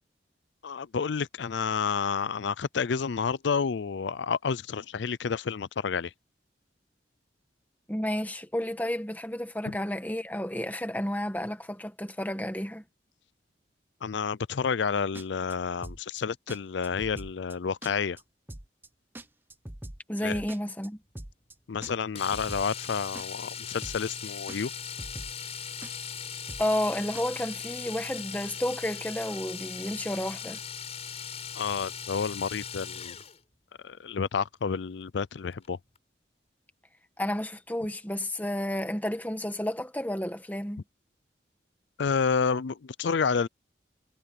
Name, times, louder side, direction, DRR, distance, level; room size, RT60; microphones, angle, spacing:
voice 1, 0.6-6.1 14.0-18.2 20.2-20.4 21.7-24.7 31.5-33.2 33.8-35.8 42.0-43.5, left 6 dB, 80° left, 0.5 m, -30 dB
voice 2, 7.9-12.8 20.1-21.0 26.6-30.6 37.2-40.8, left 1 dB, 10° left, 1.5 m, -31 dB
sound 1, 15.1-15.5 15.8-16.2 16.5-16.6 16.8-17.5 17.8-18.2 18.5-18.9 19.1-20.9 21.1-21.5 21.8-22.9 23.1-23.5 23.8-24.2 24.5-24.6 24.8-25.5 25.8-26.2 26.5-26.9 27.1-27.3, right 1 dB, 10° right, 0.7 m, -42 dB
Domestic sounds home sounds, 22.2-33.4 35.5-35.7 36.0-36.1, left 7 dB, 35° left, 5.8 m, -39 dB
head